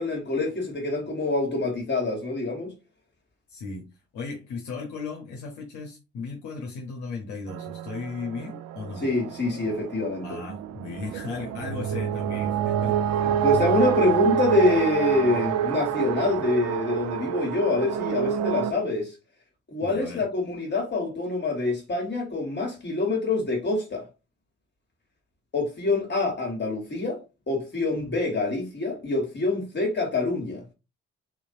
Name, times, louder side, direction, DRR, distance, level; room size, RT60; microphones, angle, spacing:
voice 1, 0.0-2.7 9.0-10.4 13.2-19.1 19.7-24.1 25.5-27.2 27.5-30.6, left 2 dB, 35° left, 1.5 m, -26 dB
voice 2, 3.5-9.1 10.2-13.0 19.8-20.3, left 4 dB, 65° left, 0.9 m, -36 dB
sound 1, 7.5-18.7, right 9 dB, 55° right, 0.5 m, -28 dB
3.8 x 3.0 x 2.6 m
hypercardioid pair, 40°, 32 cm